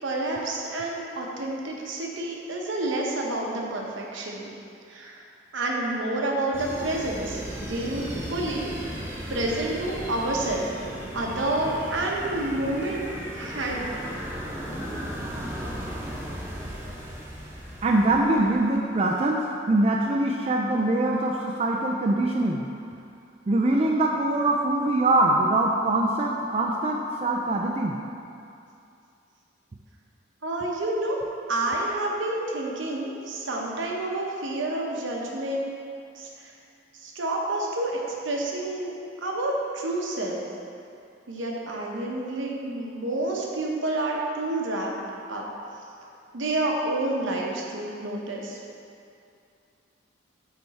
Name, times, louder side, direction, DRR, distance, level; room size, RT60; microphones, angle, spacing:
voice 1, 0.0-4.5 4.9-5.2 5.5-8.7 9.3-10.7 11.1-13.0 13.3-13.9 30.4-31.2 31.5-35.7 36.2-36.3 37.0-37.9 38.2-38.9 39.2-40.4 41.3-44.9 45.3-45.4 46.3-48.6, right 2 dB, 75° right, -2 dB, 0.9 m, -29 dB
sound 1, 6.5-18.8, equal, 10° right, 0.7 m, -36 dB
voice 2, 17.8-22.6 23.5-28.0, right 2 dB, 30° right, 0 dB, 0.3 m, -23 dB
8.8 x 3.4 x 4.1 m, 2.5 s
head